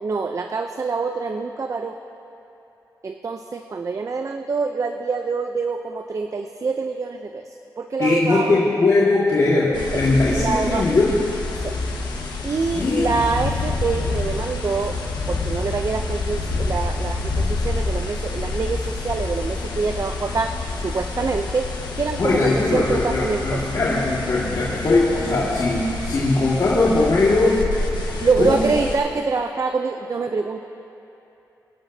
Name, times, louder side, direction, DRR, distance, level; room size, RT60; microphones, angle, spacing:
voice 1, 0.0-2.0 3.0-7.4 7.8-8.6 9.9-10.0 10.3-10.9 11.6-11.8 12.4-15.0 15.3-21.7 22.0-23.6 28.2-30.7, right 4 dB, 45° right, 6 dB, 0.6 m, -25 dB
voice 2, 8.0-11.2 12.7-13.1 22.2-27.6 28.4-28.6, left 2 dB, 55° left, -8 dB, 2.0 m, -20 dB
sound 1, 9.7-29.0, left 3 dB, 85° left, 1.4 m, -28 dB
25.0 x 11.5 x 2.8 m, 2.9 s
cardioid pair, 70°, 7 cm